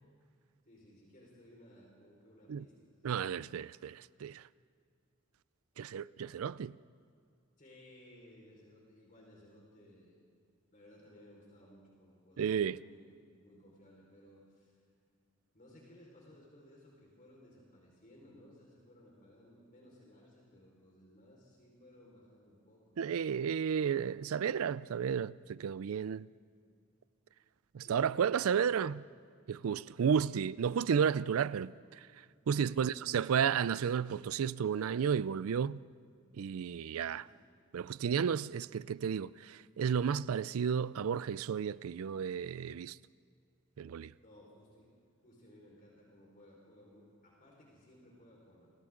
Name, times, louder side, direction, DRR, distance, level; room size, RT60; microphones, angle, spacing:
voice 1, 0.7-2.9 7.6-10.2 10.7-14.8 15.5-23.0 27.8-29.0 30.0-30.6 32.6-33.5 37.1-37.5 44.1-44.9 45.2-48.7, left 1 dB, 40° left, 4.7 m, -59 dB
voice 2, 3.0-4.4 5.8-6.8 12.4-12.8 23.0-26.3 27.7-29.0 29.5-32.1 32.5-35.8 36.4-37.3 37.7-43.0 43.8-44.1, right 7 dB, 80° right, 0.4 m, -32 dB
29.0 x 25.0 x 3.8 m
head